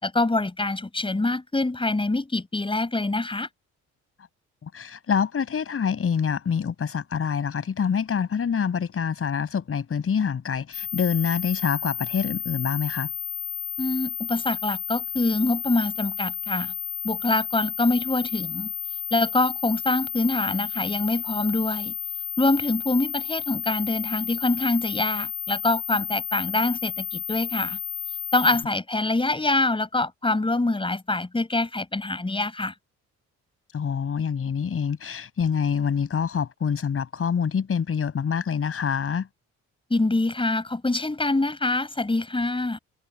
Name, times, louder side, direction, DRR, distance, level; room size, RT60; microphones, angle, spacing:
voice 1, 0.0-3.5 13.8-16.7 17.0-18.7 19.1-21.9 22.4-27.8 28.3-32.7 39.9-42.8, left 2 dB, 15° left, 6.8 m, -25 dB
voice 2, 4.6-13.1 33.7-39.3, left 7 dB, 45° left, 6.5 m, -26 dB
sound 1, 10.7-28.6, left 11 dB, 90° left, 1.8 m, -32 dB
cardioid pair, 90°, 30 cm